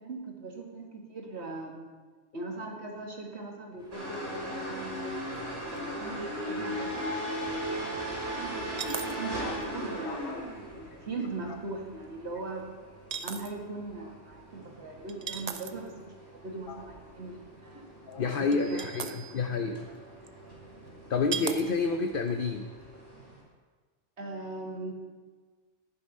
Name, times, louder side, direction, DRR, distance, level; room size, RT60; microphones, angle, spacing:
voice 1, 0.0-1.9 2.3-5.2 5.7-7.1 7.6-10.5 10.8-12.7 13.2-17.8 18.4-19.2 19.5-19.6 20.2-20.3 24.2-24.9, right 3 dB, 65° right, 1 dB, 2.1 m, -40 dB
sound 1, 3.8-12.7, equal, 5° right, 2.5 m, -54 dB
sound 2, 3.9-23.4, right 1 dB, 80° right, 4.7 m, -39 dB
sound 3, 5.4-5.5 5.7-5.8 8.7-9.2 9.6-9.7 11.5-11.6 13.1-13.5 15.1-15.9 18.1-18.2 18.5-19.1 20.2-20.3 21.3-21.6 22.1-22.3, right 6 dB, 45° right, 0.6 m, -36 dB
voice 2, 8.9-9.6 10.0-10.5 10.9-11.6 16.7-16.8 17.8-19.9 21.1-22.7, left 4 dB, 55° left, 5 dB, 0.8 m, -31 dB
11.5 x 11.0 x 5.5 m, 1.4 s
omnidirectional pair, 1.2 m